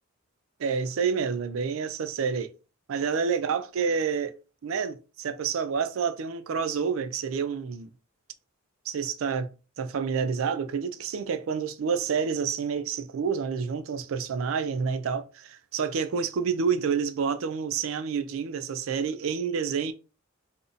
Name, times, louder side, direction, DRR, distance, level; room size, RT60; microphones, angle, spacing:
voice 1, 0.6-2.5 2.9-4.4 4.6-7.9 8.9-9.5 9.8-19.9, right 6 dB, 65° right, 0.4 m, -28 dB
2.5 x 2.1 x 3.8 m
head